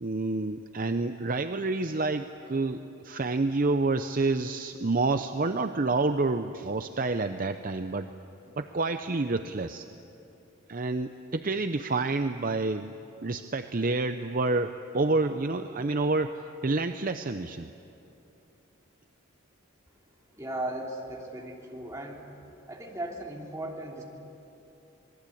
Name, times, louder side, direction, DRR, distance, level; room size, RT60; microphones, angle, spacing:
voice 1, 0.0-8.1 8.6-9.9 10.7-12.9 13.2-17.7, right 3 dB, 40° right, 8 dB, 0.6 m, -28 dB
voice 2, 20.4-22.2 22.7-24.0, right 1 dB, 15° right, -1 dB, 3.0 m, -37 dB
27.0 x 20.5 x 8.6 m, 2.9 s
head